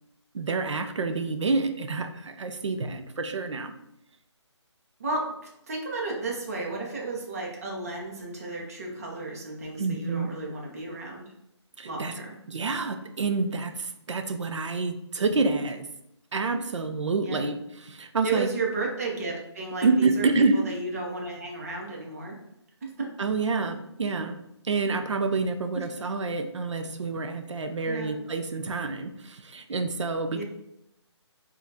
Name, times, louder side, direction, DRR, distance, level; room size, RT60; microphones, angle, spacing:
voice 1, 0.3-3.7 9.8-10.3 11.8-12.1 12.5-15.9 16.3-18.5 19.8-20.6 23.2-24.4 24.6-30.4, right 3 dB, 80° right, 7 dB, 0.5 m, -28 dB
voice 2, 5.7-11.2 11.8-12.3 17.2-17.5 18.2-20.3 20.5-22.4 22.8-22.9 25.7-25.8 27.9-28.1 30.3-30.4, right 3 dB, 30° right, -2 dB, 0.7 m, -33 dB
4.9 x 2.4 x 2.7 m, 0.81 s
hypercardioid pair, 170°, 15 cm